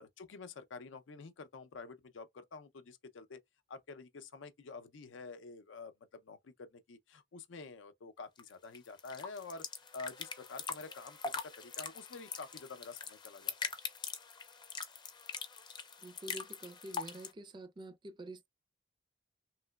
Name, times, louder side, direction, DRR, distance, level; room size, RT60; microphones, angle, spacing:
voice 1, 0.0-3.4 3.7-9.7 9.9-13.7, left 4 dB, 85° left, 0.5 m, -48 dB
sound 1, 8.4-17.3, left 5 dB, 25° left, 0.5 m, -43 dB
voice 2, 16.0-18.5, right 2 dB, 25° right, 0.4 m, -48 dB
3.2 x 2.9 x 2.2 m
head